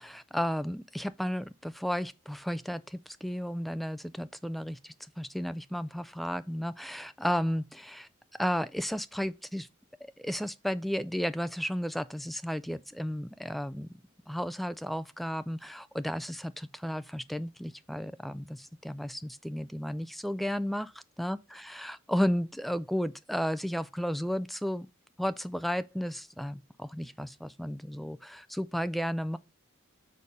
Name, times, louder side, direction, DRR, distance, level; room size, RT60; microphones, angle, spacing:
voice 1, 0.0-8.1 8.4-9.7 10.0-13.9 14.3-20.9 21.2-24.9 25.2-29.4, equal, ahead, 0.3 m, -33 dB
6.5 x 4.1 x 5.2 m
head